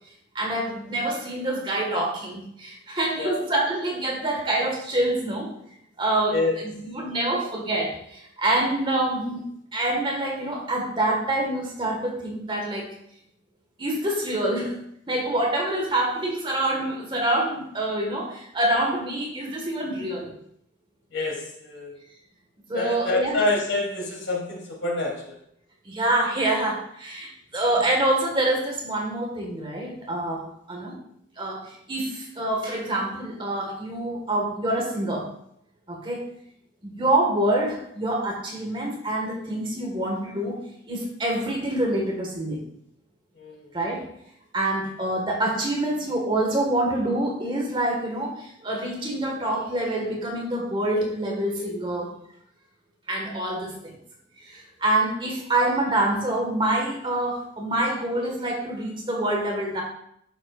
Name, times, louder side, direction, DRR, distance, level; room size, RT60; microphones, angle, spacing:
voice 1, 0.4-5.5 6.0-12.9 13.8-14.7 15.1-20.3 22.7-23.4 25.9-31.0 31.4-35.3 35.9-36.3 36.8-40.6 40.9-42.6 43.7-44.1 44.5-52.1 53.1-53.9 54.5-59.8, right 1 dB, 25° right, -1 dB, 1.8 m, -26 dB
voice 2, 21.1-21.9 22.7-25.4 43.4-43.7, left 2 dB, 80° left, -4 dB, 3.7 m, -27 dB
11.0 x 7.8 x 2.6 m, 0.71 s
head